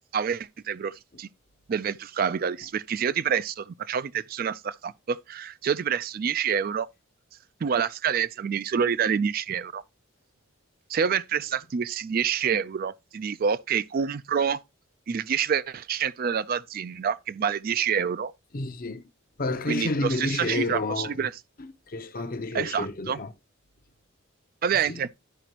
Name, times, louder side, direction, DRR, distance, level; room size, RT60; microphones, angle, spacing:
voice 1, 0.1-1.3 1.7-6.9 7.6-9.8 10.9-14.6 15.1-18.3 19.7-21.3 22.5-23.2 24.6-25.1, right 7 dB, 45° right, 0.3 m, -27 dB
voice 2, 18.5-19.1 19.4-21.3 21.6-23.3 24.7-25.0, left 2 dB, 45° left, 0.7 m, -30 dB
12.5 x 5.0 x 2.9 m
head